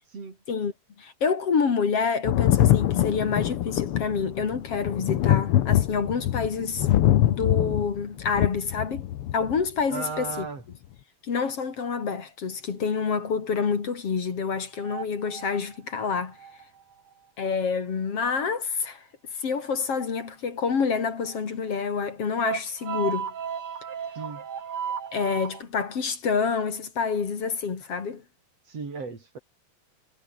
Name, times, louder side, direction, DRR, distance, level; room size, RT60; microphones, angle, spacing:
voice 1, 1.0-6.9 7.3-9.1 9.3-10.5 11.2-16.4 17.4-19.0 19.4-23.3 25.1-28.2, left 5 dB, 50° left, 3.5 m, -27 dB
Thunder, 2.2-9.6 10.7-10.8, left 12 dB, 70° left, 1.4 m, -23 dB
voice 2, 9.9-10.6 24.2-24.4 28.7-29.4, right 4 dB, 50° right, 5.5 m, -35 dB
sound 1, 14.8-16.8 19.7-19.8 21.3-21.4 21.8-21.9 22.4-25.6, right 7 dB, 70° right, 4.3 m, -34 dB
omnidirectional pair, 3.6 m